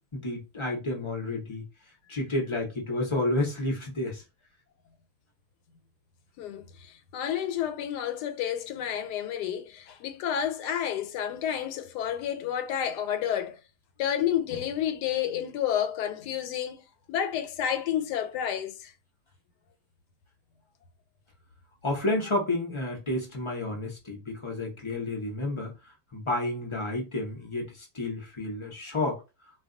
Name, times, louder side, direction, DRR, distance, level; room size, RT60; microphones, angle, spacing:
voice 1, 0.1-1.6 2.1-4.2 21.8-25.7 26.1-29.2, left 2 dB, 35° left, 0.5 m, -30 dB
voice 2, 6.4-13.6 14.0-18.9, left 9 dB, 85° left, 1.1 m, -30 dB
2.5 x 2.3 x 3.7 m
omnidirectional pair, 1.7 m